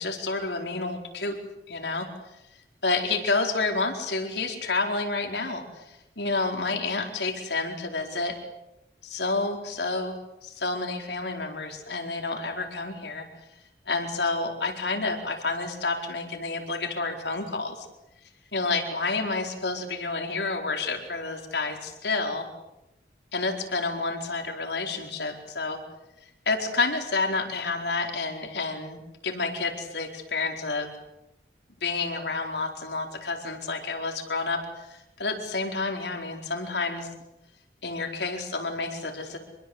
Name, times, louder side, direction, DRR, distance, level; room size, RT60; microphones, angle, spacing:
voice 1, 0.0-1.4 1.7-2.1 2.8-8.3 9.0-10.1 10.4-13.3 13.9-17.9 18.5-22.4 23.3-25.8 26.2-30.9 31.8-37.1 37.8-39.4, left 3 dB, 80° left, 3 dB, 4.6 m, -29 dB
26.0 x 22.5 x 8.1 m, 0.93 s
head